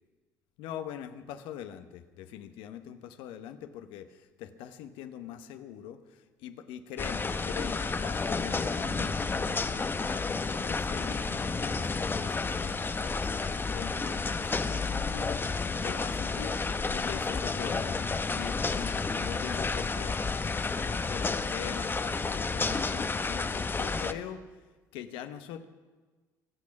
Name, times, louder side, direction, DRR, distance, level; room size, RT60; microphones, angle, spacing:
voice 1, 0.6-20.2 20.7-24.4 24.9-25.7, left 10 dB, 70° left, 9 dB, 1.0 m, -43 dB
sound 1, 7.0-24.1, left 4 dB, 25° left, 0.8 m, -31 dB
23.5 x 8.4 x 5.9 m, 1.3 s
hypercardioid pair, 60°, 9 cm